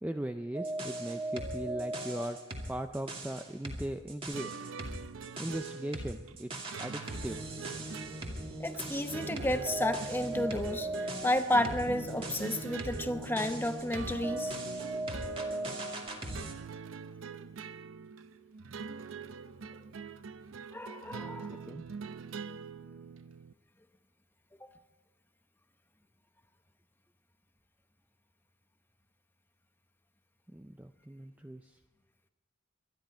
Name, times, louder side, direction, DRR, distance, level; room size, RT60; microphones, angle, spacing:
voice 1, 0.0-2.4 2.7-4.5 5.4-7.4 21.2-21.8 30.5-31.8, right 1 dB, 10° right, 7 dB, 0.4 m, -39 dB
sound 1, 0.5-16.5, right 1 dB, 30° right, 2.2 m, -39 dB
sound 2, 4.3-23.5, right 5 dB, 85° right, 0.6 m, -44 dB
voice 2, 8.6-10.9 11.2-14.6 20.7-21.5, left 1 dB, 10° left, 7 dB, 0.9 m, -31 dB
25.0 x 10.5 x 4.4 m, 1.1 s
head